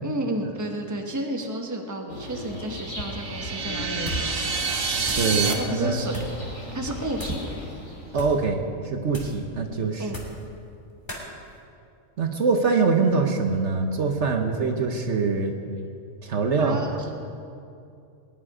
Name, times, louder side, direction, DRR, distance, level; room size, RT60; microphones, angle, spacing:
voice 1, 0.0-4.5 4.9-5.0 5.6-6.2 6.7-7.4 10.0-10.2 16.6-17.1, right 1 dB, 15° right, 2 dB, 1.2 m, -31 dB
sound 1, 2.1-8.4, left 1 dB, 85° left, 3.2 m, -36 dB
sound 2, 2.8-5.5, right 5 dB, 90° right, 1.8 m, -28 dB
sound 3, 4.0-4.4 4.7-5.4 6.1-6.4 7.1-7.5 8.1-8.5 9.1-9.4 10.1-10.5 11.1-11.3, equal, 20° left, 2.7 m, -38 dB
voice 2, 5.2-6.0 8.1-8.6 8.8-10.0 12.2-15.5 16.2-16.8, right 4 dB, 60° right, 4 dB, 1.3 m, -23 dB
20.5 x 11.0 x 5.0 m, 2.5 s
omnidirectional pair, 1.4 m